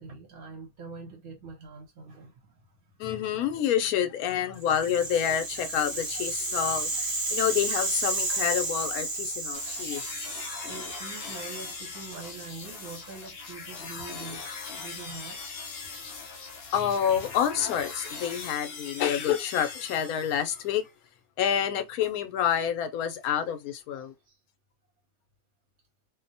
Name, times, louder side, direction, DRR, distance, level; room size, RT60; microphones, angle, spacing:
voice 1, 0.0-2.9 9.1-14.5 14.8-16.7 23.9-24.4, right 4 dB, 75° right, 1.2 m, -45 dB
voice 2, 3.0-10.0 16.7-20.8 21.4-24.1, left 9 dB, 80° left, 1.1 m, -28 dB
Rattle (instrument), 4.6-12.8, right 2 dB, 35° right, 0.4 m, -32 dB
sound 1, 9.5-20.7, left 4 dB, 55° left, 0.8 m, -40 dB
2.7 x 2.1 x 2.6 m
omnidirectional pair, 1.5 m